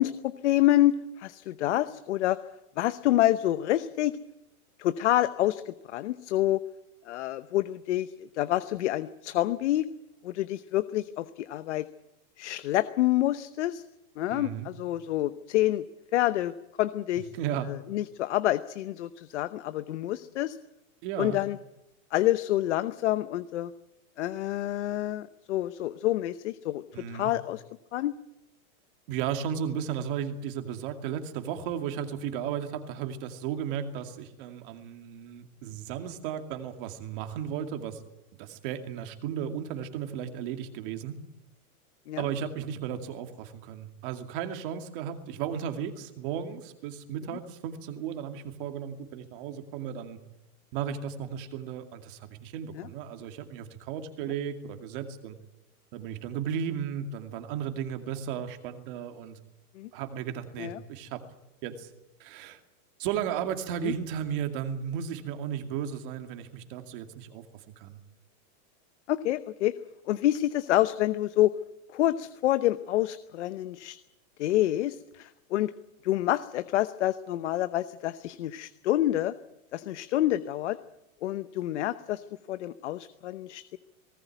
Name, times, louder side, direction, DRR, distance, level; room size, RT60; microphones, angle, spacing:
voice 1, 0.0-2.4 2.8-4.1 4.8-6.6 7.1-9.9 10.2-11.8 12.4-13.8 14.2-15.8 16.1-16.5 16.8-17.3 17.7-20.6 21.2-21.6 22.1-23.7 24.2-26.8 27.1-27.6 27.9-28.1 42.1-42.2 52.7-52.9 59.8-59.9 60.6-60.8 63.8-63.9 69.1-69.7 70.1-71.5 71.9-74.0 74.4-75.7 76.0-79.3 79.7-80.8 81.2-83.8, left 14 dB, 50° left, 12 dB, 0.9 m, -27 dB
voice 2, 14.3-14.7 17.3-17.7 21.0-21.4 26.9-27.3 29.1-38.0 38.4-41.2 42.2-50.2 50.7-55.4 55.9-59.4 59.9-61.2 61.6-61.9 62.2-62.6 63.0-67.4 67.8-68.0, right 8 dB, 35° right, 6 dB, 2.4 m, -35 dB
19.5 x 18.5 x 9.2 m, 0.92 s
supercardioid pair, 175°, 45 cm